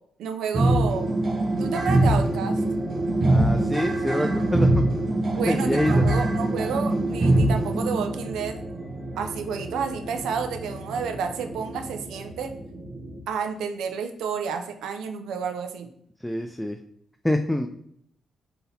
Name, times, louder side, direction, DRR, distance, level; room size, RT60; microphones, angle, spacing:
voice 1, 0.2-1.1 1.6-2.6 5.4-8.5 9.2-12.5 13.3-15.9, right 6 dB, 80° right, 6 dB, 0.5 m, -30 dB
sound 1, 0.5-13.2, right 1 dB, 45° right, 0.9 m, -24 dB
voice 2, 3.3-4.7 5.5-6.0 16.2-16.8 17.2-17.7, left 1 dB, 5° left, 5 dB, 0.4 m, -26 dB
3.9 x 2.8 x 4.0 m, 0.70 s
supercardioid pair, 55°, 0 cm